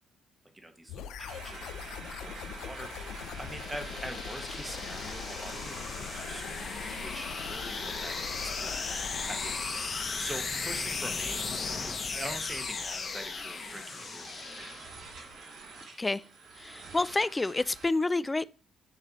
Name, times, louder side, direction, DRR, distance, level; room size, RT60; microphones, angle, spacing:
voice 1, 0.5-1.7 2.2-11.4 12.0-14.6, right 1 dB, 15° right, 1.2 m, -44 dB
sound 1, 0.9-9.6, left 7 dB, 85° left, 0.6 m, -42 dB
sound 2, 1.3-17.9, right 4 dB, 65° right, 3.3 m, -47 dB
sound 3, 1.8-15.2, left 4 dB, 45° left, 1.1 m, -37 dB
voice 2, 16.6-18.5, left 2 dB, 20° left, 0.4 m, -29 dB
9.7 x 3.3 x 4.1 m
cardioid pair, 90°, 0 cm